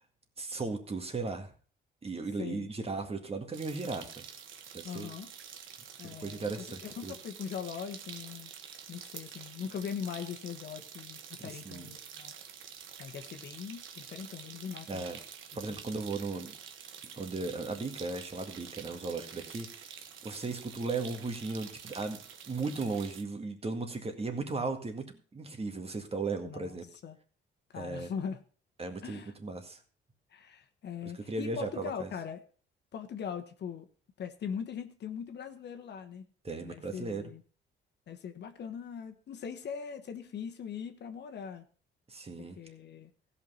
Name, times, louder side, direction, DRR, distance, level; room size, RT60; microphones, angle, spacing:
voice 1, 0.4-1.5 2.0-4.2 4.7-5.1 6.0-7.1 11.4-11.9 14.9-15.2 15.6-16.5 17.0-19.9 20.2-26.9 27.8-28.1 28.8-29.8 31.3-32.1 36.4-37.2 42.1-42.6, right 3 dB, 30° right, 6 dB, 2.0 m, -36 dB
voice 2, 2.4-2.7 4.8-5.3 6.0-8.5 8.9-12.3 13.0-15.1 15.7-15.8 26.4-27.2 27.7-28.4 29.0-29.3 30.3-32.4 32.9-33.9 34.2-36.3 36.6-37.4 38.1-41.6 42.6-43.1, left 7 dB, 60° left, 7 dB, 1.2 m, -41 dB
sound 1, 3.5-23.2, right 8 dB, 80° right, 1.3 m, -48 dB
15.5 x 5.8 x 5.6 m, 0.40 s
cardioid pair, 90°, 20 cm